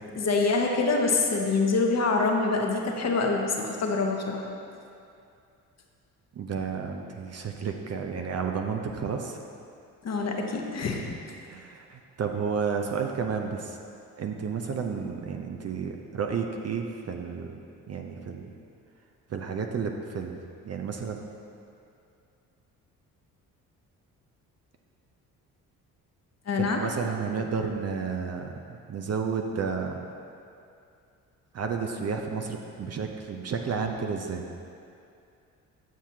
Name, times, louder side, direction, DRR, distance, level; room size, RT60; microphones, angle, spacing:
voice 1, 0.1-4.4 10.0-11.1 26.5-26.8, left 3 dB, 35° left, 1 dB, 1.1 m, -25 dB
voice 2, 6.3-9.4 11.5-13.8 14.2-17.6 17.9-18.5 19.3-20.4 20.6-21.2 26.5-30.1 31.5-34.4, right 5 dB, 35° right, 3 dB, 0.7 m, -31 dB
9.6 x 7.1 x 2.8 m, 2.5 s
hypercardioid pair, 50°, 44 cm